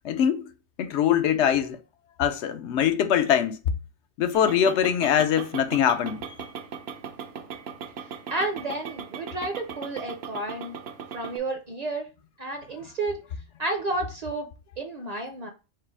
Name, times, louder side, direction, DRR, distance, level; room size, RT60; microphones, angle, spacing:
voice 1, 0.0-0.5 0.8-1.8 2.2-3.6 4.2-6.3, left 9 dB, 80° left, 0.9 m, -23 dB
sound 1, 4.3-11.4, right 7 dB, 70° right, 0.9 m, -38 dB
voice 2, 8.3-10.8 11.1-12.1 12.4-13.2 13.6-14.5 14.8-15.5, right 2 dB, 45° right, 0.6 m, -31 dB
4.8 x 2.0 x 4.4 m
omnidirectional pair, 1.1 m